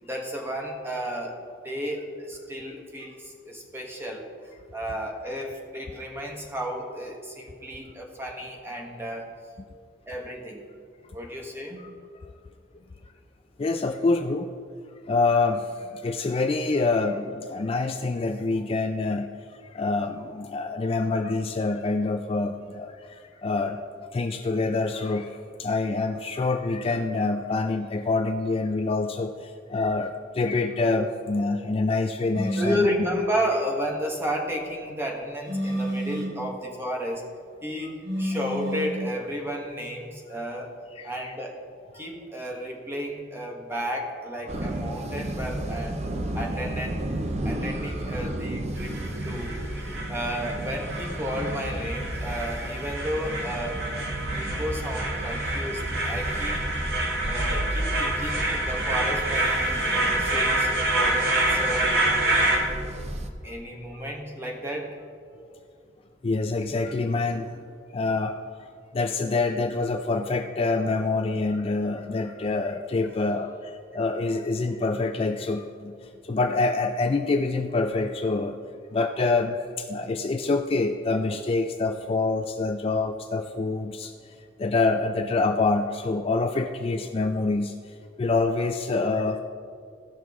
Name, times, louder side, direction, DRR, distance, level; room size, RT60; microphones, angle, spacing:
voice 1, 0.0-4.3 4.7-9.3 10.1-10.6 11.1-11.9 32.5-37.3 37.6-40.7 41.0-41.6 41.9-46.0 46.3-47.0 47.4-54.1 54.3-56.6 57.3-62.0 63.4-65.0, equal, 15° right, 0 dB, 1.3 m, -32 dB
voice 2, 13.6-14.5 15.1-23.8 24.1-32.9 41.0-41.3 52.3-52.5 57.9-58.3 66.2-67.6 67.9-68.4 68.9-78.6 78.9-84.3 84.6-89.4, left 3 dB, 30° left, 5 dB, 0.3 m, -26 dB
sound 1, 32.3-32.9 35.5-36.4 38.0-39.1, equal, 80° right, 2.3 m, -29 dB
sound 2, 44.5-63.3, right 1 dB, 35° right, 0.7 m, -33 dB
sound 3, 48.8-62.6, right 1 dB, 60° right, 2.0 m, -27 dB
16.0 x 6.0 x 3.6 m, 2.3 s
head